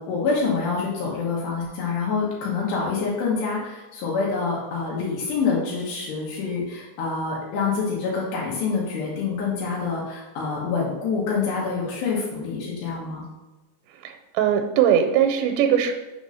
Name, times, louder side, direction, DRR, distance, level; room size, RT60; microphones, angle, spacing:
voice 1, 0.0-13.2, left 4 dB, 85° left, -5 dB, 3.4 m, -26 dB
voice 2, 14.0-15.9, right 9 dB, 85° right, 5 dB, 2.8 m, -20 dB
6.8 x 4.2 x 6.2 m, 1.1 s
omnidirectional pair, 4.9 m